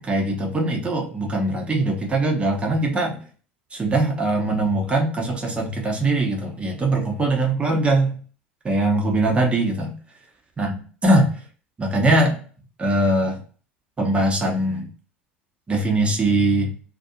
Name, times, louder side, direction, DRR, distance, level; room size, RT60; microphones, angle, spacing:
voice 1, 0.0-3.2 3.7-8.1 8.6-9.9 10.6-11.4 11.8-12.4 12.8-13.4 14.0-14.9 15.7-16.7, right 2 dB, 20° right, 1 dB, 0.8 m, -21 dB
2.6 x 2.5 x 2.2 m, 0.41 s
figure-of-eight pair, 75°, 6 cm